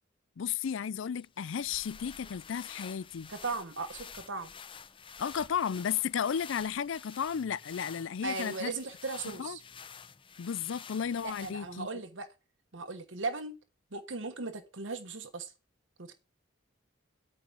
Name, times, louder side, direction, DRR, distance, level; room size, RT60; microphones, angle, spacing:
voice 1, 0.4-3.3 5.2-8.7 9.4-9.6 10.4-11.9, left 7 dB, 70° left, 0.4 m, -33 dB
sound 1, 1.2-11.9, left 6 dB, 25° left, 0.6 m, -49 dB
voice 2, 3.3-4.5 8.2-9.6 11.2-12.3 12.7-13.6 13.9-15.5 16.0-16.1, right 3 dB, 70° right, 1.3 m, -37 dB
9.3 x 5.0 x 7.3 m
head